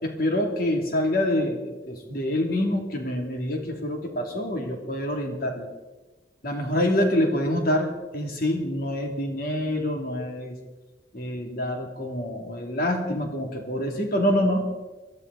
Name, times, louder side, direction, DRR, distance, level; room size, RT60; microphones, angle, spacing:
voice 1, 0.0-5.7 6.4-10.6 11.1-14.7, left 1 dB, 55° left, 2 dB, 3.0 m, -26 dB
22.5 x 14.0 x 4.2 m, 1.1 s
head